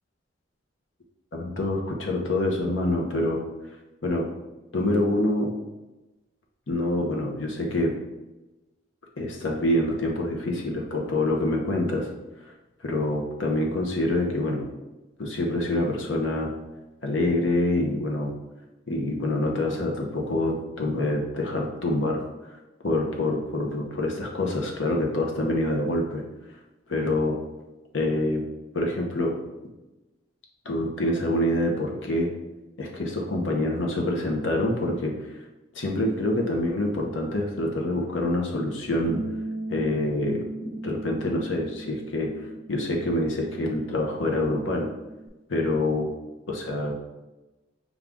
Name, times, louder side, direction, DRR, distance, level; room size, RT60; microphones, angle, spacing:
voice 1, 1.3-3.4 4.0-4.2 4.7-5.5 6.7-7.9 9.2-12.1 12.8-14.7 15.2-16.5 17.0-18.3 18.9-22.2 22.8-26.2 26.9-27.4 27.9-28.4 28.7-29.3 30.6-32.3 32.8-35.1 35.7-39.2 39.7-40.5 40.8-42.3 42.7-44.9 45.5-46.1 46.5-46.9, left 1 dB, 80° left, 0 dB, 0.8 m, -26 dB
Bass guitar, 39.0-45.3, right 2 dB, 80° right, 0.6 m, -38 dB
5.5 x 2.4 x 3.5 m, 1.1 s
head